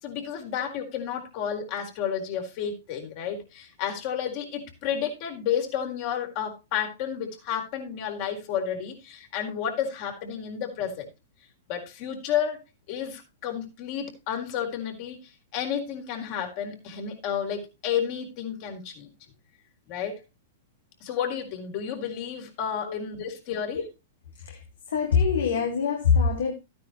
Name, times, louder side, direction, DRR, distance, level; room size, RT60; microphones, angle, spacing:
voice 1, 0.0-11.1 11.7-12.6 12.9-19.1 19.9-20.2 21.0-23.8, left 8 dB, 50° left, 4.1 m, -31 dB
voice 2, 24.9-26.5, left 6 dB, 80° left, 1.9 m, -24 dB
13.5 x 9.6 x 3.1 m
hypercardioid pair, 125°, 0 cm